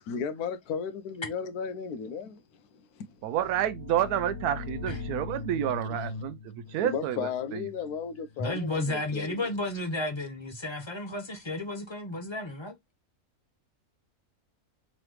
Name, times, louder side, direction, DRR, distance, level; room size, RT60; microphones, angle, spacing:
voice 1, 0.1-2.4 2.7-3.1 5.9-6.0 6.7-9.5, left 6 dB, 85° left, 1.1 m, -35 dB
voice 2, 3.2-6.4 6.7-7.6, right 11 dB, 85° right, 1.1 m, -29 dB
sound 1, 3.3-8.8, left 4 dB, 50° left, 1.4 m, -40 dB
voice 3, 8.4-12.7, left 2 dB, 20° left, 0.8 m, -33 dB
3.8 x 3.2 x 3.1 m
omnidirectional pair, 1.6 m